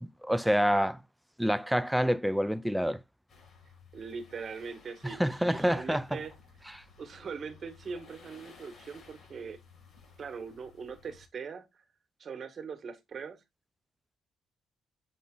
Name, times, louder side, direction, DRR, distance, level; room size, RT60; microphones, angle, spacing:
voice 1, 0.0-1.0 1.4-3.0 5.0-6.2, equal, 5° right, 0.5 m, -27 dB
sound 1, 3.3-11.3, left 5 dB, 50° left, 4.6 m, -56 dB
voice 2, 3.9-6.3 7.0-9.6 10.2-11.8 12.2-13.4, right 5 dB, 50° right, 1.7 m, -41 dB
7.4 x 3.9 x 3.8 m
cardioid pair, 90°, 0 cm